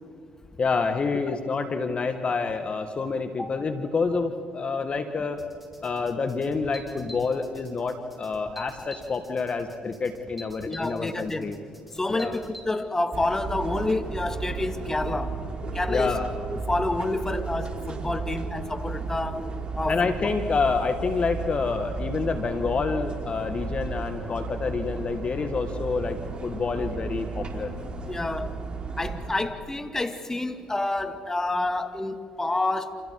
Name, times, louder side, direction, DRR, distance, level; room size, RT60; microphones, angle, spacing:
voice 1, 0.6-5.4 5.8-11.6 12.1-12.3 15.9-16.3 19.9-27.7, left 4 dB, 40° left, 7 dB, 1.9 m, -28 dB
sound 1, 5.4-12.6, equal, 5° right, 6.0 m, -47 dB
voice 2, 10.7-11.5 11.9-15.4 15.7-16.2 16.5-19.5 19.7-20.3 28.1-28.6 29.0-33.0, left 2 dB, 15° left, 7 dB, 2.4 m, -28 dB
sound 2, 13.1-29.3, right 4 dB, 35° right, 3.6 m, -34 dB
29.0 x 28.5 x 4.9 m, 2.4 s
hypercardioid pair, 60°, 3 cm